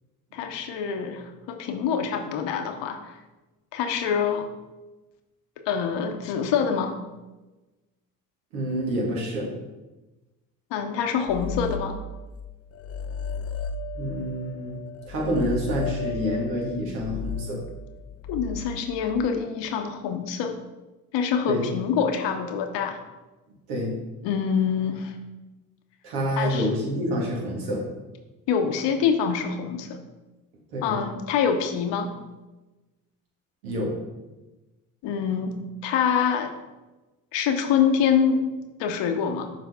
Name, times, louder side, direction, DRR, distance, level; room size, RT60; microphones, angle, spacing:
voice 1, 0.3-3.2 3.7-4.5 5.7-7.0 10.7-12.0 18.3-20.6 21.1-23.0 24.2-25.1 26.4-26.7 28.5-30.0 30.8-32.1 35.0-35.6 35.8-36.5 37.3-38.5 38.8-39.5, left 7 dB, 65° left, 6 dB, 1.0 m, -25 dB
voice 2, 8.5-9.5 13.9-14.8 15.1-17.6 21.5-21.7 23.7-23.9 26.0-27.8 30.7-31.0 33.6-34.0, equal, 80° right, -3 dB, 2.0 m, -27 dB
sound 1, 11.3-12.4 12.7-19.3, left 5 dB, 35° left, 0.4 m, -34 dB
7.5 x 5.0 x 3.7 m, 1.1 s
hypercardioid pair, 55°, 45 cm